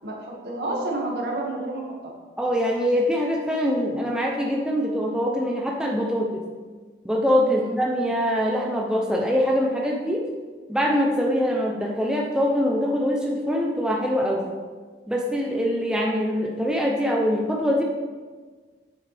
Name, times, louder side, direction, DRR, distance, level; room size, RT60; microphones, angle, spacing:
voice 1, 0.0-2.1 7.4-7.8, right 2 dB, 65° right, -2 dB, 2.0 m, -30 dB
voice 2, 2.4-6.4 7.0-10.2 10.7-14.5 15.1-17.8, equal, 5° right, -2 dB, 0.7 m, -23 dB
9.5 x 7.7 x 3.5 m, 1.4 s
head